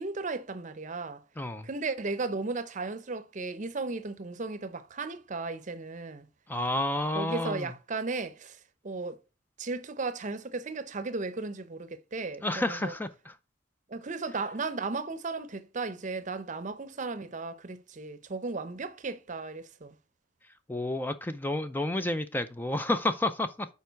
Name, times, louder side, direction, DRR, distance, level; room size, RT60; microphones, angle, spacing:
voice 1, 0.0-1.2 1.6-6.3 7.1-9.2 9.6-12.9 13.9-19.9, right 3 dB, 40° right, 0.7 m, -35 dB
voice 2, 1.4-1.7 6.5-7.7 12.4-13.3 20.7-23.7, left 1 dB, 10° left, 0.4 m, -30 dB
7.0 x 4.7 x 4.5 m
head